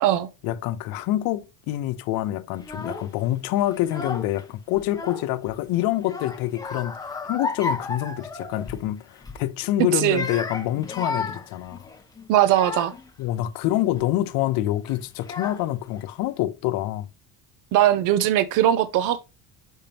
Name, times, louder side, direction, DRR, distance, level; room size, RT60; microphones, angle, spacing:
voice 1, 0.4-11.9 13.2-17.1, left 14 dB, 80° left, 0.9 m, -26 dB
Child speech kid speaking / Crying sobbing, 2.6-3.1 3.8-4.4 4.7-5.6 6.0-8.9 9.2-9.5 10.0-13.1 13.7-14.1 14.9-15.0 15.2-15.9, left 3 dB, 10° left, 0.7 m, -33 dB
voice 2, 9.9-10.2 12.3-12.9 17.7-19.2, right 12 dB, 60° right, 0.7 m, -20 dB
6.4 x 5.2 x 2.8 m
cardioid pair, 155°, 34 cm